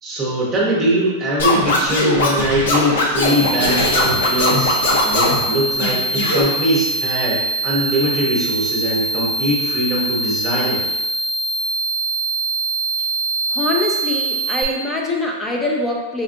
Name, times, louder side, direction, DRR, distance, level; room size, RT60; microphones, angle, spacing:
voice 1, 0.0-10.8, right 1 dB, 10° right, -5 dB, 0.7 m, -21 dB
Scratching (performance technique), 1.4-5.4 5.8-6.4, left 2 dB, 65° left, 0.7 m, -19 dB
sound 1, 3.2-14.6, right 2 dB, 90° right, 0.6 m, -23 dB
voice 2, 13.5-16.2, left 2 dB, 5° left, 0 dB, 0.4 m, -23 dB
5.0 x 2.4 x 2.5 m, 1.1 s
supercardioid pair, 180°, 0 cm